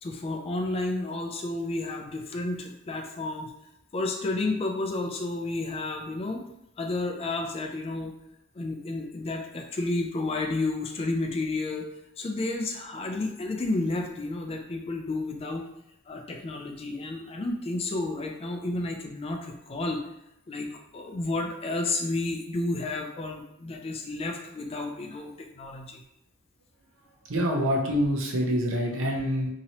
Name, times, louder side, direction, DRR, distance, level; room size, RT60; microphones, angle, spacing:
voice 1, 0.0-3.5 3.9-6.4 6.8-8.1 8.5-11.9 12.2-15.6 16.1-20.0 20.5-26.0, left 2 dB, 25° left, 2 dB, 0.3 m, -31 dB
voice 2, 27.3-29.5, equal, 65° right, 0 dB, 0.7 m, -26 dB
2.8 x 2.8 x 2.8 m, 0.83 s
head